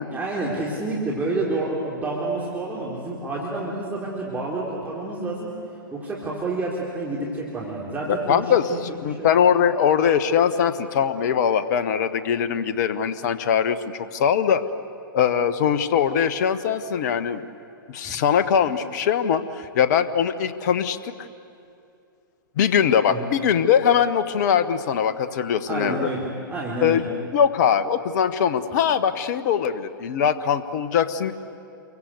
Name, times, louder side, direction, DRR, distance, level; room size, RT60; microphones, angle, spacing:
voice 1, 0.1-5.5 5.9-8.8 9.1-9.3 18.0-18.2 23.1-23.3 25.7-27.0, right 2 dB, 15° right, -5 dB, 4.4 m, -29 dB
voice 2, 8.1-14.6 15.1-17.4 17.9-21.1 22.6-26.1 26.8-27.0 27.3-31.3, left 8 dB, 50° left, 12 dB, 1.3 m, -21 dB
29.0 x 23.5 x 8.1 m, 2.6 s
figure-of-eight pair, 110°, 12 cm